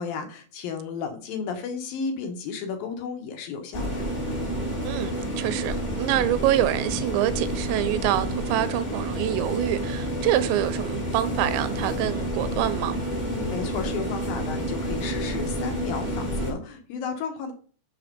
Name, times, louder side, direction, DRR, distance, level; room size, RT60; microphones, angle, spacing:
voice 1, 0.0-4.1 13.2-17.5, left 5 dB, 65° left, 2.5 m, -33 dB
sound 1, 3.7-16.5, right 1 dB, 20° left, 1.1 m, -29 dB
voice 2, 4.8-13.0, right 13 dB, 85° right, 3.1 m, -26 dB
6.7 x 6.7 x 5.2 m
omnidirectional pair, 5.2 m